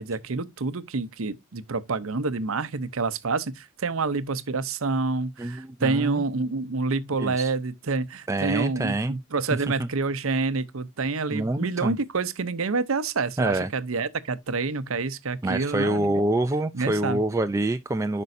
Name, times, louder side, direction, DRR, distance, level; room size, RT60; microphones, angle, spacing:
voice 1, 0.0-16.2 16.7-17.2, right 4 dB, 70° right, 0.7 m, -28 dB
voice 2, 5.4-6.2 7.2-7.5 8.3-9.2 9.8-9.9 11.3-12.0 13.4-13.7 15.4-18.2, right 1 dB, 15° right, 0.4 m, -26 dB
10.5 x 5.3 x 2.6 m
head